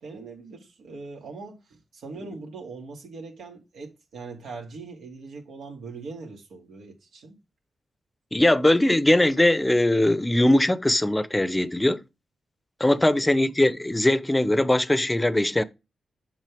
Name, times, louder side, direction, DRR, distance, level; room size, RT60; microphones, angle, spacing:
voice 1, 0.0-7.4 12.9-13.1, right 4 dB, 85° right, 2.4 m, -41 dB
voice 2, 8.3-12.0 12.8-15.6, left 1 dB, 15° left, 0.8 m, -21 dB
7.5 x 5.6 x 3.4 m
cardioid pair, 60°, 0 cm